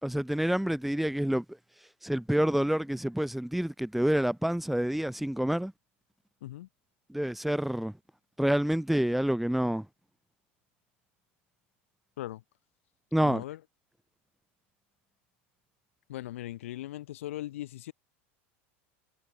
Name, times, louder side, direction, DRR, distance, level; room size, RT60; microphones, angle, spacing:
voice 1, 0.0-1.4 2.0-5.7 7.1-7.9 8.4-9.9 13.1-13.4, equal, ahead, 0.7 m, -28 dB
voice 2, 13.2-13.6 16.1-17.9, left 14 dB, 85° left, 5.4 m, -39 dB
supercardioid pair, 120°, 7 cm